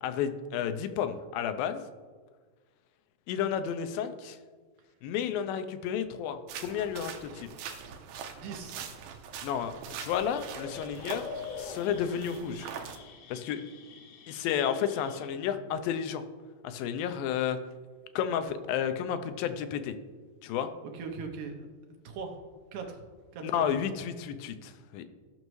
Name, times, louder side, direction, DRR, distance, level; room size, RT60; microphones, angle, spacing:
voice 1, 0.0-1.8 3.3-4.4 5.0-7.5 9.4-11.3 11.6-12.7 13.3-13.6 14.3-16.2 16.6-17.6 18.2-19.9 20.4-20.7 23.4-25.0, left 8 dB, 85° left, 10 dB, 2.4 m, -32 dB
sound 1, 6.5-13.0, right 7 dB, 85° right, 2.5 m, -43 dB
voice 2, 8.3-8.8 20.9-21.7 22.0-22.4 22.7-23.0 23.3-23.5, right 5 dB, 70° right, 3 dB, 2.2 m, -39 dB
sound 2, 10.3-15.3, left 5 dB, 70° left, 1.9 m, -45 dB
16.0 x 6.4 x 3.1 m, 1.5 s
omnidirectional pair, 4.1 m